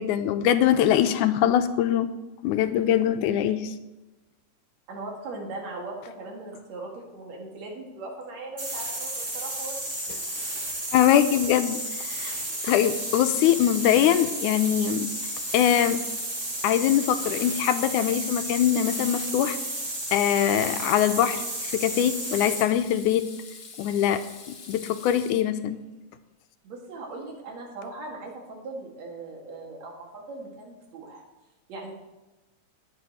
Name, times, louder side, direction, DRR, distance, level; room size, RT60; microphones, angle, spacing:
voice 1, 0.0-2.1 2.4-3.7 10.9-12.3 12.6-15.1 15.5-16.0 16.6-19.6 20.1-23.3 23.8-24.2 24.7-25.8, left 10 dB, 90° left, 9 dB, 2.1 m, -23 dB
voice 2, 4.9-9.9 26.6-31.2 31.7-31.9, right 2 dB, 60° right, -1 dB, 3.3 m, -39 dB
sound 1, 8.6-22.7, right 1 dB, 25° right, 1.9 m, -33 dB
Water tap faucet / Sink (filling or washing), 10.7-11.0 12.3-25.7, left 4 dB, 45° left, 2.2 m, -45 dB
20.5 x 7.7 x 3.1 m, 1.1 s
omnidirectional pair, 3.5 m